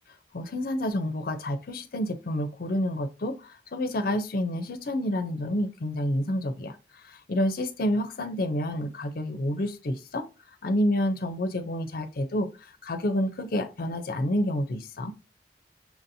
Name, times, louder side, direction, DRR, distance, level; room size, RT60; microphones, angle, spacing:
voice 1, 0.3-6.8 7.0-10.2 10.6-15.1, left 1 dB, 55° left, 0.5 m, -29 dB
5.8 x 2.7 x 2.6 m
head